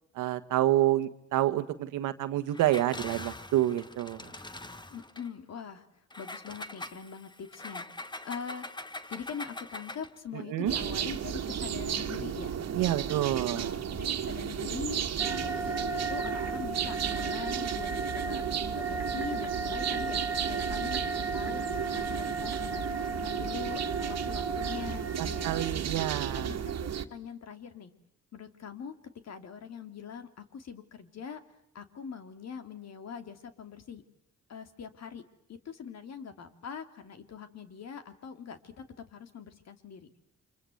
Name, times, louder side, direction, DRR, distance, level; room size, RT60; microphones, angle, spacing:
voice 1, 0.1-4.2 10.5-10.7 12.7-13.7 25.2-26.5, right 14 dB, 90° right, 11 dB, 1.5 m, -28 dB
Engine, 2.5-5.3 6.1-10.2, left 2 dB, 15° left, 1.4 m, -43 dB
voice 2, 4.9-8.7 9.1-12.6 13.5-18.4 18.7-25.5 26.3-27.9 28.3-29.0 29.2-31.4 31.7-34.0 34.5-35.2 35.5-40.1, left 7 dB, 60° left, 9 dB, 2.9 m, -43 dB
sound 1, 10.7-27.1, right 8 dB, 55° right, 1.9 m, -34 dB
sound 2, 15.2-25.7, right 3 dB, 5° right, 1.8 m, -36 dB
29.5 x 25.5 x 7.9 m, 0.75 s
cardioid pair, 90°, 30 cm